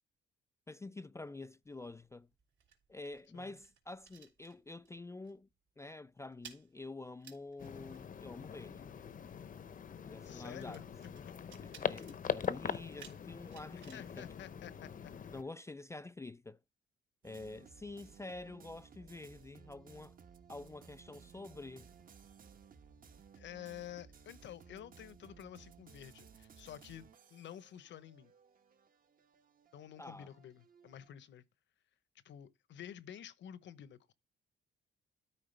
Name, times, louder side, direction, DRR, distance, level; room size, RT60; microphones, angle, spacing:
voice 1, 0.7-2.3 2.9-5.5 5.8-8.9 10.0-10.9 11.6-14.3 15.3-16.6 17.2-20.2 20.5-21.9 30.0-30.3, left 2 dB, 15° left, 0.3 m, -48 dB
sound 1, 1.6-5.0 5.2-5.5 5.8-15.2, right 8 dB, 70° right, 3.1 m, -60 dB
sound 2, 7.6-15.4, left 7 dB, 45° left, 0.7 m, -42 dB
voice 2, 10.2-10.8 11.2-11.3 13.7-15.3 23.3-28.3 29.7-31.4 32.2-34.1, left 10 dB, 65° left, 0.9 m, -50 dB
sound 3, 17.2-31.1, right 6 dB, 45° right, 1.1 m, -59 dB
13.0 x 4.7 x 3.3 m
cardioid pair, 90°, 20 cm